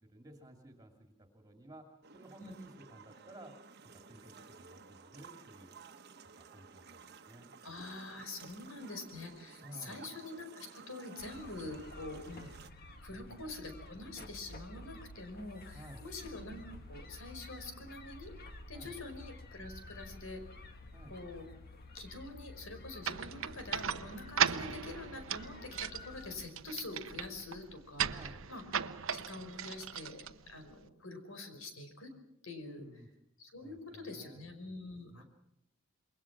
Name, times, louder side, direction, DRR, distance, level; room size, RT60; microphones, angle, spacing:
voice 1, 0.1-1.9 2.1-3.5 3.9-5.7 6.4-7.5 9.6-10.0 13.1-13.4 15.7-16.1 18.7-19.0 20.9-21.2 28.0-28.5 32.6-33.1 33.6-34.5 35.1-35.2, right 1 dB, 20° right, 3 dB, 2.6 m, -54 dB
sound 1, 2.0-12.7, right 5 dB, 50° right, 1.3 m, -55 dB
voice 2, 7.6-12.5 13.0-18.3 18.7-20.4 21.1-21.5 21.9-28.6 29.1-32.1 32.4-32.9 33.4-35.2, left 2 dB, 80° left, 7 dB, 5.2 m, -46 dB
sound 2, 11.2-26.4, left 2 dB, 50° left, 1.9 m, -51 dB
sound 3, 23.0-30.9, right 8 dB, 70° right, 0.9 m, -37 dB
27.5 x 22.5 x 6.1 m, 0.80 s
head